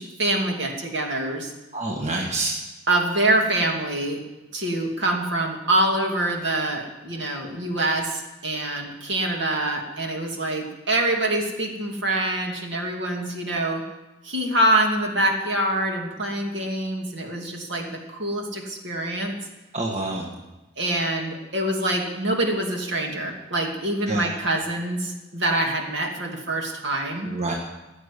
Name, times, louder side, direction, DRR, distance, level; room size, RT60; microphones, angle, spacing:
voice 1, 0.0-1.5 2.9-4.2 4.5-13.8 14.2-19.4 20.8-27.3, right 1 dB, 60° right, 1 dB, 2.5 m, -25 dB
voice 2, 1.7-2.5 19.7-20.4 24.1-24.3 27.3-27.5, right 2 dB, 35° right, -1 dB, 1.7 m, -27 dB
16.0 x 7.2 x 10.0 m, 1.1 s
head